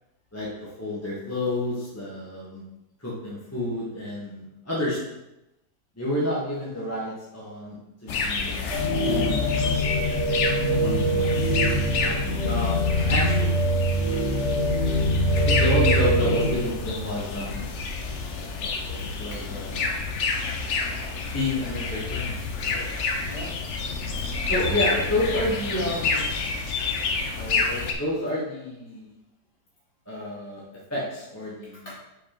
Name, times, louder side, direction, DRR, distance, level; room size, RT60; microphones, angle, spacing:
voice 1, 0.3-2.6 3.0-5.0 6.0-10.0 10.8-11.3 12.0-13.7 15.3-17.6 18.6-20.2 21.3-22.8 24.5-26.3 27.3-29.1 30.1-30.6 30.9-31.9, left 1 dB, 10° left, -6 dB, 1.1 m, -30 dB
sound 1, 8.1-27.9, left 4 dB, 55° left, 0.9 m, -29 dB
sound 2, 8.7-16.5, equal, 45° right, 2.0 m, -23 dB
voice 2, 19.0-19.4 20.9-21.3 22.8-23.5 24.2-24.3 31.7-32.0, left 1 dB, 30° left, -7 dB, 2.5 m, -44 dB
5.7 x 4.7 x 4.4 m, 0.91 s
omnidirectional pair, 1.8 m